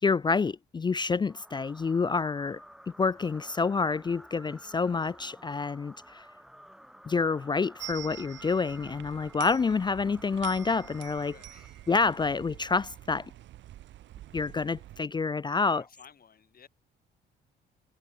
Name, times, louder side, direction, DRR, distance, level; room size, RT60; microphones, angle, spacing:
voice 1, 0.0-2.6 3.0-6.2 7.0-11.3 11.9-13.3 14.3-15.8, left 4 dB, 20° left, 0.4 m, -28 dB
sound 1, 1.3-12.0, equal, ahead, 7.5 m, -52 dB
sound 2, 7.8-15.0, right 13 dB, 70° right, 0.6 m, -47 dB
voice 2, 11.2-11.9 15.6-16.7, left 7 dB, 50° left, 7.0 m, -56 dB
cardioid pair, 90°, 20 cm